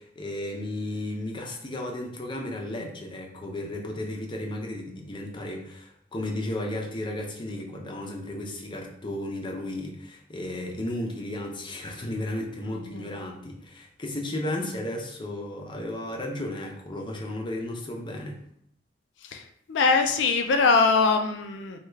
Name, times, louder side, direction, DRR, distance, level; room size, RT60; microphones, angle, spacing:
voice 1, 0.0-18.4, left 1 dB, 25° left, 1 dB, 0.5 m, -34 dB
voice 2, 19.7-21.8, left 4 dB, 80° left, 5 dB, 0.4 m, -22 dB
3.3 x 2.3 x 3.2 m, 0.68 s
head